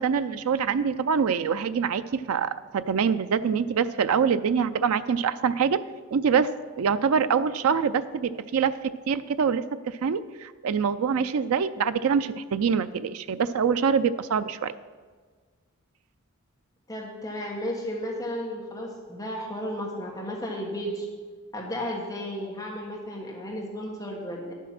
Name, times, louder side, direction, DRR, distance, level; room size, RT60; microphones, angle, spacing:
voice 1, 0.0-5.8 6.1-6.5 6.8-8.7 9.1-14.7, right 6 dB, 85° right, 12 dB, 0.4 m, -25 dB
voice 2, 16.9-21.1 21.5-24.5, equal, 15° left, -2 dB, 1.4 m, -33 dB
11.0 x 7.3 x 5.8 m, 1.5 s
head